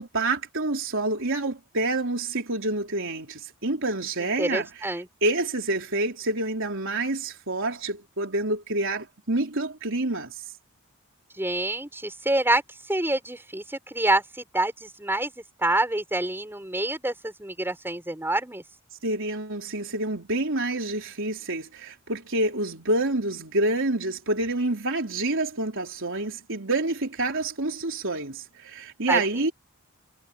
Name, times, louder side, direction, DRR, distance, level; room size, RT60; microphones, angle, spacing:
voice 1, 0.0-4.7 5.2-10.3 19.0-29.5, right 2 dB, 65° right, 4.1 m, -27 dB
voice 2, 4.4-5.1 11.4-12.6 12.9-18.6 29.1-29.5, right 1 dB, 10° right, 6.0 m, -27 dB
head